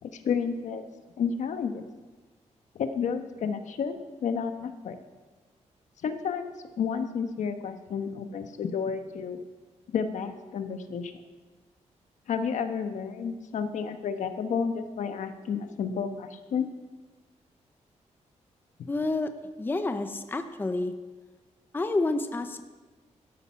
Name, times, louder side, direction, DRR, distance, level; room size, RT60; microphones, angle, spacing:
voice 1, 0.0-0.8 1.2-1.8 2.7-5.0 6.0-9.4 9.9-11.1 12.3-16.7, left 6 dB, 75° left, 8 dB, 1.2 m, -31 dB
voice 2, 18.9-19.3 19.6-20.9 21.7-22.6, left 2 dB, 15° left, 8 dB, 0.7 m, -29 dB
13.0 x 12.0 x 5.7 m, 1.3 s
wide cardioid pair, 155°, 13 cm